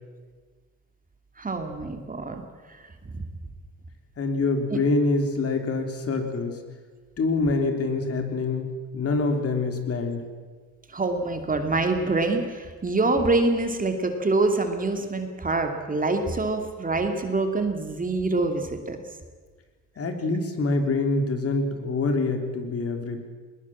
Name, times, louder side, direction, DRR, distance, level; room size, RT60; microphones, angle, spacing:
voice 1, 1.4-2.4 3.1-3.2 10.9-19.0, right 3 dB, 25° right, 5 dB, 2.7 m, -25 dB
voice 2, 4.2-6.6 7.2-10.2 20.0-23.2, left 3 dB, 50° left, 5 dB, 3.5 m, -25 dB
20.5 x 20.0 x 7.4 m, 1.5 s
cardioid pair, 90°, 30 cm